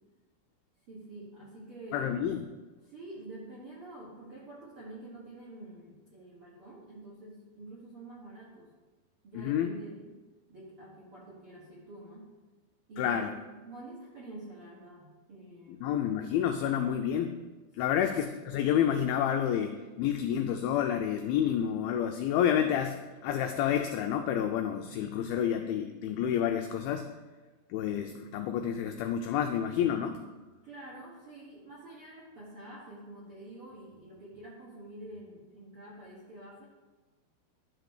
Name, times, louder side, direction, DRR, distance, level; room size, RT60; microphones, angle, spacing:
voice 1, 0.9-2.1 2.8-8.7 9.2-10.2 10.5-12.3 12.9-13.3 13.6-16.0 17.7-18.3 30.6-36.6, right 2 dB, 65° right, -7 dB, 1.4 m, -47 dB
voice 2, 1.9-2.4 9.4-9.7 13.0-13.3 15.8-17.3 17.8-23.0 23.2-27.1 27.7-30.2, left 9 dB, 90° left, 6 dB, 2.1 m, -29 dB
11.5 x 3.8 x 6.5 m, 1.2 s
omnidirectional pair, 4.9 m